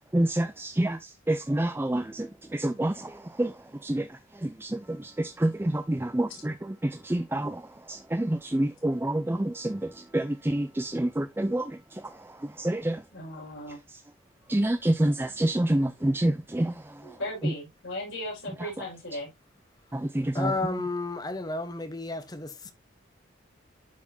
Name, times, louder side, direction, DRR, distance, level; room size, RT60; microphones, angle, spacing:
voice 1, 0.1-3.5 3.8-4.1 4.4-7.6 7.9-12.0 12.6-13.0 14.5-16.7 19.9-20.5, right 1 dB, 10° right, 0.4 m, -28 dB
voice 2, 13.1-13.8 17.0-19.3, left 1 dB, 70° left, 5.0 m, -37 dB
voice 3, 20.3-22.7, left 2 dB, 20° left, 0.9 m, -32 dB
11.5 x 4.3 x 2.7 m
head